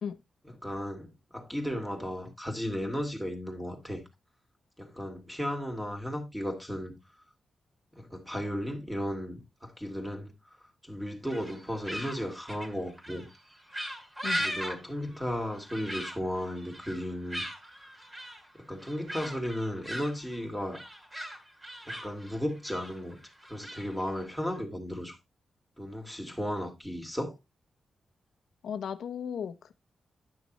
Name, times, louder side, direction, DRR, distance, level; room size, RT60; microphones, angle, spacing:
voice 1, 0.6-4.0 4.8-6.9 8.0-10.3 10.8-13.3 14.4-17.4 17.8-17.9 18.5-20.8 21.9-23.2 23.5-25.2 25.8-27.4, equal, ahead, 2.5 m, -35 dB
sound 1, 11.3-24.6, equal, 20° right, 2.8 m, -39 dB
voice 2, 28.6-29.7, left 7 dB, 80° left, 0.8 m, -36 dB
10.5 x 6.3 x 3.0 m
cardioid pair, 95°, 0 cm